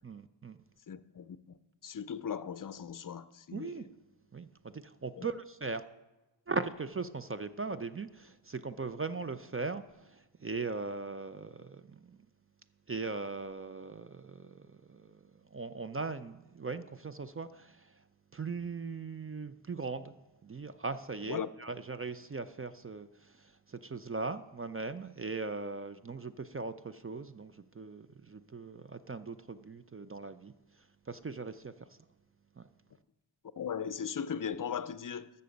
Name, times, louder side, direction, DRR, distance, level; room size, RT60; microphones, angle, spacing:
voice 1, 0.0-0.6 3.5-3.8 4.3-5.8 6.5-12.2 12.9-15.2 15.5-17.9 18.3-20.1 20.4-30.5 31.1-31.7 32.6-32.7, right 4 dB, 30° right, 0.4 m, -39 dB
voice 2, 0.9-3.9 5.2-5.3 21.2-21.5 33.6-35.3, left 7 dB, 45° left, 0.5 m, -38 dB
13.5 x 6.8 x 5.2 m
wide cardioid pair, 80°, 46 cm